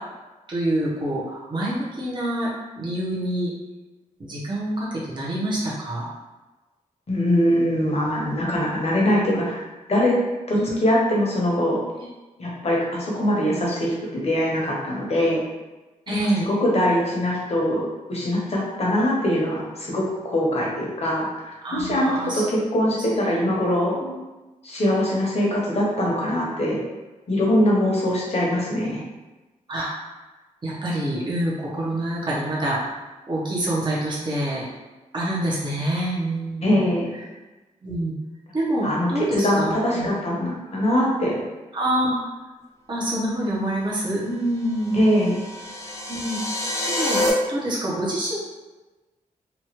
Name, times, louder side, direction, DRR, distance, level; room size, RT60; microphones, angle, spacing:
voice 1, 0.5-2.5 2.8-3.5 4.2-6.1 10.5-10.7 16.1-16.5 21.6-22.4 24.0-24.1 29.7-29.9 30.6-32.8 33.3-34.7 35.1-36.8 37.8-38.1 38.5-40.1 41.7-42.2 42.9-45.0 46.1-46.4 46.9-47.2 47.5-48.4, right 1 dB, 35° right, -6 dB, 0.7 m, -26 dB
voice 2, 7.1-9.6 9.9-10.1 10.5-11.8 12.4-15.4 16.1-16.2 16.5-24.0 24.6-26.8 27.3-29.0 36.6-37.1 38.8-41.4 44.9-45.4, left 1 dB, 50° left, -4 dB, 0.9 m, -22 dB
sound 1, 44.7-47.3, left 1 dB, 20° left, 0.5 m, -27 dB
2.9 x 2.3 x 2.9 m, 1.1 s
wide cardioid pair, 120°, 14 cm